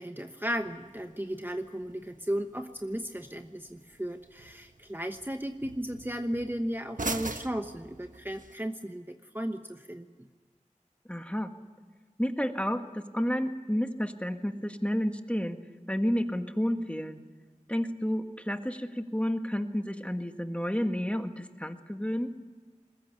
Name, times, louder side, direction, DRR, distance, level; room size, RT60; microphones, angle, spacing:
voice 1, 0.0-10.3, equal, 15° right, 6 dB, 1.1 m, -35 dB
sound 1, 0.5-8.5, right 2 dB, 80° right, 1.3 m, -43 dB
voice 2, 11.1-11.5 12.2-15.6 15.9-17.2 17.7-22.3, equal, 10° left, 6 dB, 1.7 m, -31 dB
22.0 x 19.5 x 8.6 m, 1.4 s
wide cardioid pair, 45°, 13 cm